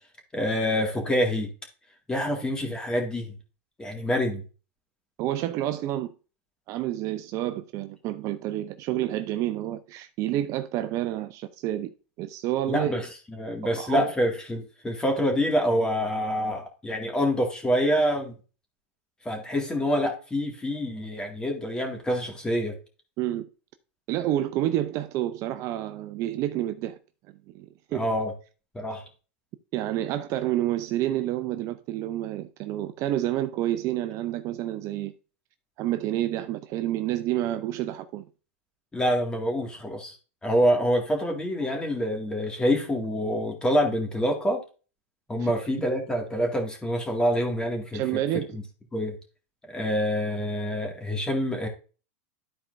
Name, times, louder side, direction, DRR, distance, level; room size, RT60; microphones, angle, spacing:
voice 1, 0.3-1.5 2.1-3.3 3.8-4.4 12.7-18.3 19.3-22.8 27.9-28.3 28.7-29.0 38.9-40.2 40.4-44.6 45.3-48.0 48.5-48.6 48.9-49.1 49.7-51.7, equal, 10° left, 1.9 m, -26 dB
voice 2, 5.2-6.1 6.7-11.9 12.2-12.9 13.6-14.1 23.2-23.5 24.1-27.0 27.5-28.0 29.7-35.1 35.8-38.3 45.4-45.5 47.9-48.6, right 13 dB, 40° right, 0.4 m, -29 dB
12.5 x 4.4 x 2.5 m
supercardioid pair, 130°, 8 cm